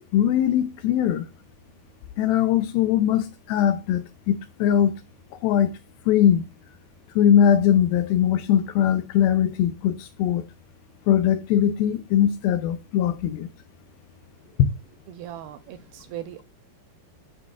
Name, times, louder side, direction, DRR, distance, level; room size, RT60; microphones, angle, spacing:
voice 1, 0.1-1.3 2.2-5.0 5.3-5.7 6.1-6.4 7.2-10.4 11.1-13.5, left 10 dB, 80° left, 2.3 m, -21 dB
voice 2, 15.1-16.4, right 11 dB, 80° right, 2.3 m, -38 dB
12.0 x 5.1 x 2.4 m
omnidirectional pair, 4.6 m